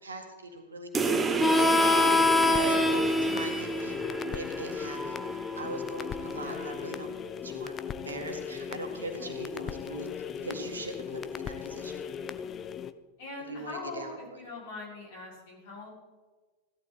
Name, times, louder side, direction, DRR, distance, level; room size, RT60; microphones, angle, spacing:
voice 1, 0.0-5.2 5.6-7.1 7.4-7.8 8.0-10.1 10.4-12.0 13.5-14.4, right 2 dB, 75° right, 4 dB, 2.0 m, -41 dB
sound 1, 0.9-6.0, right 4 dB, 15° right, 0.9 m, -32 dB
sound 2, 1.3-12.9, left 7 dB, 25° left, 0.6 m, -38 dB
Harmonica, 1.4-6.7, left 2 dB, 5° left, 1.1 m, -27 dB
voice 2, 6.3-6.7 9.2-9.4 13.2-15.9, left 3 dB, 50° left, -3 dB, 5.4 m, -42 dB
16.0 x 11.5 x 4.1 m, 1.3 s
figure-of-eight pair, 90°, 0 cm